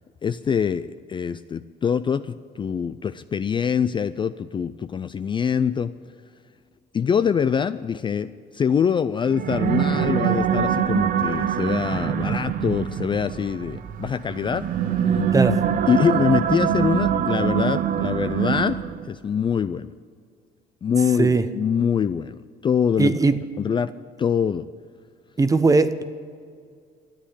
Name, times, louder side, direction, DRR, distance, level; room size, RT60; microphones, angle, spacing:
voice 1, 0.2-5.9 6.9-14.7 15.9-18.8 19.1-19.9 20.8-23.2 23.6-23.9 24.2-24.7, left 7 dB, 30° left, 12 dB, 0.4 m, -24 dB
sound 1, 9.3-19.1, right 8 dB, 55° right, 0.7 m, -24 dB
voice 2, 23.0-23.4 25.4-26.0, right 3 dB, 20° right, 12 dB, 0.8 m, -19 dB
13.0 x 8.6 x 10.0 m, 2.1 s
cardioid pair, 110°, 17 cm